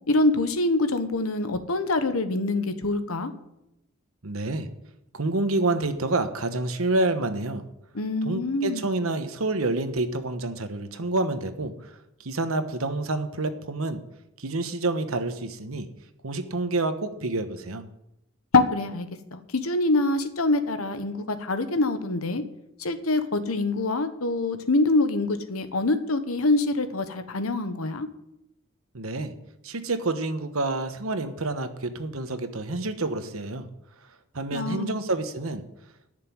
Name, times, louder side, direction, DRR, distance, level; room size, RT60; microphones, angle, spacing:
voice 1, 0.1-3.3 7.9-8.9 18.5-19.1 19.3-22.4 22.8-28.1 34.5-35.0, left 2 dB, 90° left, 10 dB, 1.2 m, -25 dB
voice 2, 4.2-4.7 5.1-7.6 8.2-11.7 12.2-14.0 14.4-15.9 16.2-17.8 28.9-29.3 29.6-33.7 34.3-35.6, right 2 dB, 85° right, 9 dB, 1.2 m, -28 dB
10.5 x 6.7 x 9.4 m, 0.86 s
head